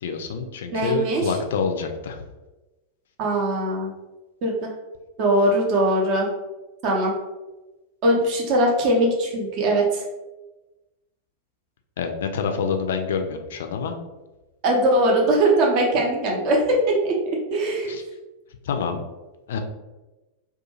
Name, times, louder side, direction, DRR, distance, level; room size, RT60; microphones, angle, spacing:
voice 1, 0.0-2.2 12.0-14.0 17.9-18.0 18.6-19.0 19.5-19.6, left 5 dB, 60° left, 5 dB, 0.3 m, -27 dB
voice 2, 0.7-1.3 3.2-3.9 4.4-4.7 5.2-6.3 6.8-7.1 8.0-10.0 14.6-17.2 17.5-17.9, right 1 dB, 40° right, -1 dB, 0.7 m, -21 dB
2.5 x 2.3 x 2.8 m, 1.1 s
figure-of-eight pair, 90°, 0 cm